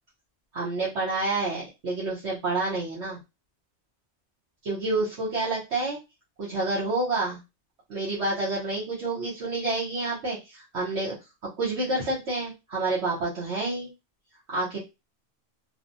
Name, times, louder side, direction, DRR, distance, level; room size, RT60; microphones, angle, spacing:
voice 1, 0.5-3.2 4.6-6.0 6.4-7.4 7.9-11.1 11.6-13.9 14.5-14.8, right 2 dB, 75° right, -7 dB, 1.3 m, -28 dB
3.1 x 2.2 x 2.5 m, 0.25 s
omnidirectional pair, 1.2 m